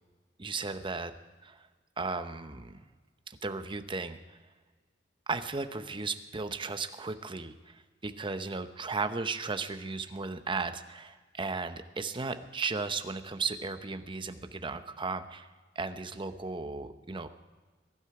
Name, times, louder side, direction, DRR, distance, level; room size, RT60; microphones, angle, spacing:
voice 1, 0.4-1.1 1.4-1.7 2.0-2.8 3.3-4.4 5.3-17.3, right 4 dB, 25° right, 9 dB, 0.8 m, -35 dB
22.0 x 11.5 x 4.8 m, 1.4 s
head